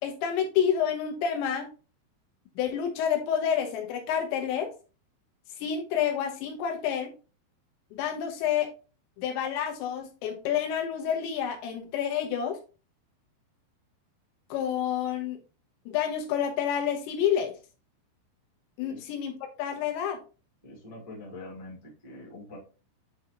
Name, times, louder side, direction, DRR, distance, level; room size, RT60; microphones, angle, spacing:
voice 1, 0.0-1.7 2.6-4.7 5.6-7.1 7.9-8.7 9.2-12.6 14.5-15.4 15.9-17.5 18.8-20.2, left 8 dB, 80° left, 3 dB, 3.1 m, -29 dB
voice 2, 20.6-22.6, left 2 dB, 10° left, -4 dB, 1.7 m, -44 dB
9.2 x 4.0 x 2.8 m, 0.33 s
omnidirectional pair, 5.3 m